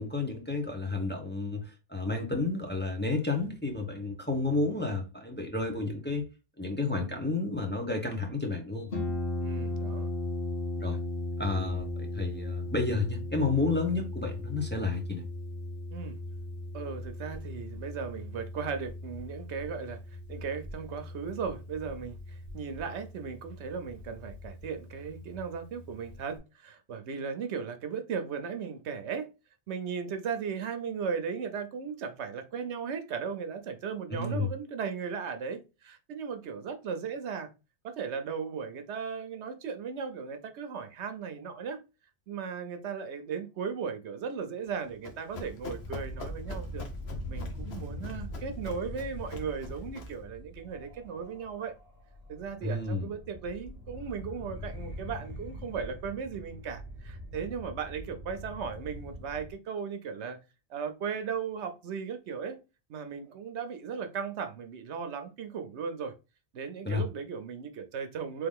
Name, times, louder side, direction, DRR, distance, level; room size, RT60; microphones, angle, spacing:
voice 1, 0.0-6.3 6.6-9.0 10.8-11.0 11.4-15.2 34.1-34.5 52.6-53.1 66.8-67.1, left 3 dB, 10° left, 0.8 m, -31 dB
Harp, 8.9-26.4, left 2 dB, 50° left, 1.5 m, -37 dB
voice 2, 9.4-10.1 15.9-16.2 16.7-20.0 20.3-29.3 29.7-37.5 37.8-41.8 42.3-46.9 47.3-51.7 52.3-60.4 60.7-62.6 62.9-66.1 66.5-68.5, right 6 dB, 75° right, 1.0 m, -37 dB
Run, 44.7-50.2, left 3 dB, 65° left, 1.2 m, -44 dB
sound 1, 45.8-59.5, equal, 10° right, 1.1 m, -43 dB
3.5 x 3.4 x 3.6 m
omnidirectional pair, 1.2 m